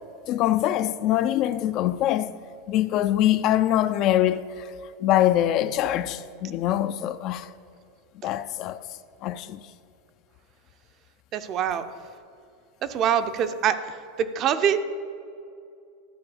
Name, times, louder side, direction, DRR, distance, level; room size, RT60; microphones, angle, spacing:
voice 1, 0.3-2.3 2.7-4.7 5.0-7.5 8.2-8.8 9.2-9.6, left 12 dB, 40° left, 0.3 m, -23 dB
voice 2, 11.3-11.8 12.8-13.8 14.2-14.8, right 9 dB, 35° right, 0.5 m, -24 dB
11.5 x 4.7 x 7.8 m
supercardioid pair, 155°, 0 cm